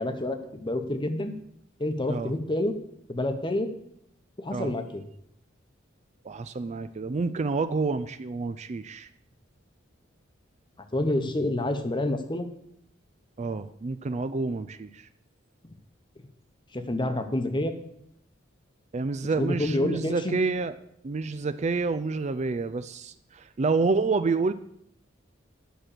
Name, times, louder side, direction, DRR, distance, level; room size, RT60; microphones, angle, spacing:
voice 1, 0.0-1.3 1.8-2.8 3.1-3.7 4.4-5.0 10.9-12.5 16.7-17.7 19.4-20.3, left 1 dB, 25° left, 8 dB, 1.0 m, -28 dB
voice 2, 6.2-9.1 13.4-15.1 18.9-20.7 21.0-24.5, right 4 dB, 35° right, 12 dB, 0.4 m, -28 dB
10.0 x 6.0 x 6.7 m, 0.72 s
head